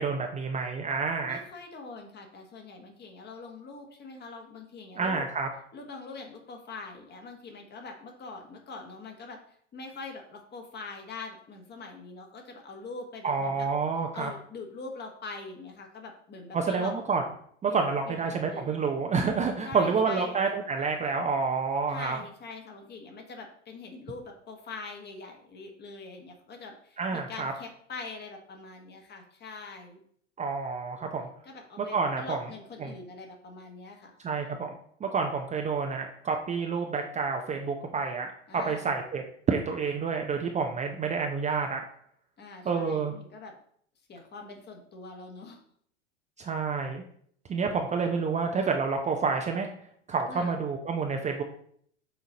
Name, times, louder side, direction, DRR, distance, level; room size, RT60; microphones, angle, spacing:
voice 1, 0.0-1.4 5.0-5.5 13.2-14.3 16.5-17.2 17.6-22.2 27.0-27.5 30.4-31.3 31.8-32.4 32.8-32.9 34.2-38.3 38.5-41.8 42.6-43.1 46.4-47.0 47.5-49.7 50.1-51.4, right 5 dB, 20° right, 3 dB, 0.6 m, -29 dB
voice 2, 1.2-5.3 5.7-9.4 9.7-13.7 14.1-16.9 17.7-18.7 19.6-20.4 21.9-30.0 31.4-34.1 38.5-38.9 42.4-43.5 44.1-45.6 50.3-50.6, left 3 dB, 30° left, 3 dB, 1.4 m, -43 dB
6.5 x 4.0 x 4.0 m, 0.62 s
hypercardioid pair, 90°, 36 cm